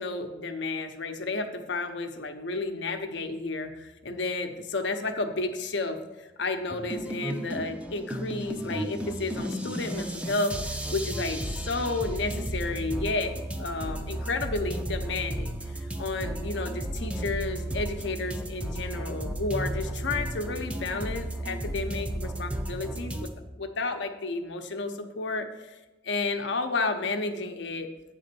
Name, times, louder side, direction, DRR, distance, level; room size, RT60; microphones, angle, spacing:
voice 1, 0.0-23.3 23.6-25.8 26.0-27.9, left 3 dB, 70° left, 5 dB, 0.7 m, -32 dB
sound 1, 6.7-23.3, right 1 dB, 5° right, 0.5 m, -34 dB
8.5 x 3.7 x 6.7 m, 1.1 s
head